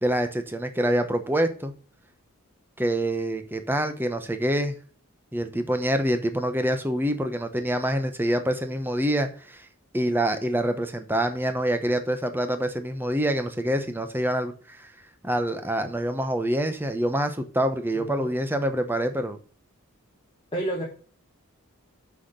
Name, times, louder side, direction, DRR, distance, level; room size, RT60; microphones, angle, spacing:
voice 1, 0.0-1.7 2.8-4.7 5.3-9.7 9.9-14.9 15.2-19.4, right 1 dB, 10° right, 8 dB, 0.9 m, -26 dB
voice 2, 17.9-18.3 20.5-20.8, right 1 dB, 25° left, -3 dB, 1.5 m, -30 dB
6.3 x 5.8 x 6.6 m, 0.42 s
head